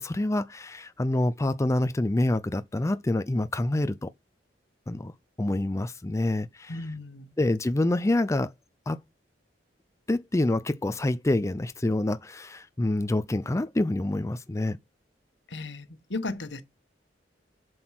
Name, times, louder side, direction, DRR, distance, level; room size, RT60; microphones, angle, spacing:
voice 1, 0.0-4.1 4.9-5.1 5.4-6.8 7.4-8.5 8.9-9.0 10.1-14.8, left 1 dB, 15° left, 0.4 m, -27 dB
voice 2, 6.7-7.3 15.5-16.6, left 2 dB, 85° left, 1.3 m, -35 dB
7.8 x 6.1 x 5.9 m
head